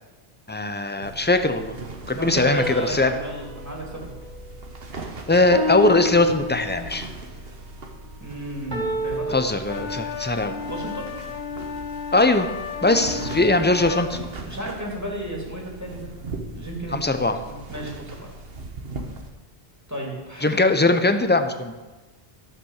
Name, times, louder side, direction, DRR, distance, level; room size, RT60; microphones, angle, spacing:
voice 1, 0.5-1.8 2.1-3.2 5.3-7.1 9.3-10.5 12.1-12.5 12.8-14.2 16.9-17.4 20.4-21.8, left 2 dB, 10° left, 8 dB, 0.6 m, -20 dB
sound 1, 1.0-19.3, right 2 dB, 65° right, 1.5 m, -39 dB
voice 2, 2.1-4.1 8.2-9.3 10.7-11.1 13.1-13.4 14.5-16.2 16.6-18.3 19.9-20.6, right 1 dB, 15° right, -3 dB, 2.9 m, -34 dB
sound 2, 2.6-5.0 5.5-7.1 8.7-9.4, left 2 dB, 40° right, 1.7 m, -31 dB
sound 3, 9.6-14.1, left 7 dB, 85° left, 1.0 m, -33 dB
13.5 x 7.3 x 6.5 m, 1.2 s
omnidirectional pair, 1.1 m